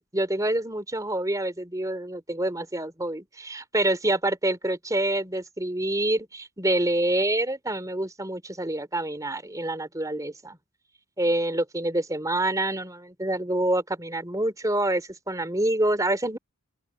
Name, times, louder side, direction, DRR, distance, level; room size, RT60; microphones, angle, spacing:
voice 1, 0.0-10.6 11.2-16.4, right 1 dB, 15° right, 3.2 m, -27 dB
open air
head